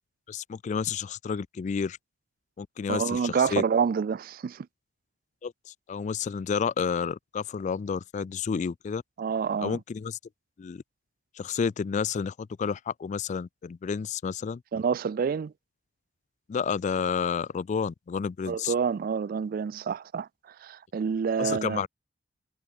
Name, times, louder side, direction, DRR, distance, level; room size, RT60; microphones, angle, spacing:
voice 1, 0.3-2.0 2.6-3.6 5.4-5.5 5.9-9.0 9.6-10.2 10.6-10.8 11.4-14.6 16.5-18.7 21.4-21.9, left 6 dB, 40° left, 0.3 m, -30 dB
voice 2, 2.9-4.7 9.2-9.8 14.7-15.5 18.5-20.3 20.6-21.8, right 6 dB, 55° right, 0.3 m, -28 dB
head